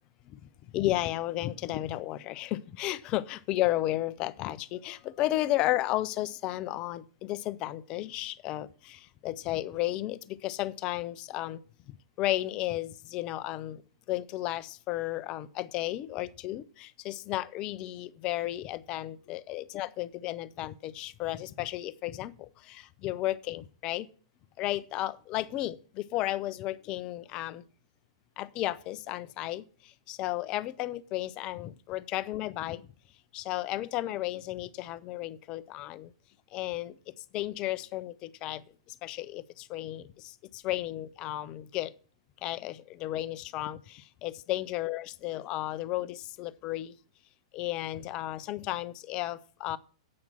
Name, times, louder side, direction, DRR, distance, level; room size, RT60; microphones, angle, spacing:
voice 1, 0.7-11.6 12.2-13.8 14.1-24.1 24.6-27.6 28.4-32.8 33.3-36.1 36.5-38.6 39.0-41.9 42.4-47.0 47.5-49.8, left 15 dB, 35° left, 0.6 m, -33 dB
8.6 x 5.9 x 7.7 m
figure-of-eight pair, 105°, 3 cm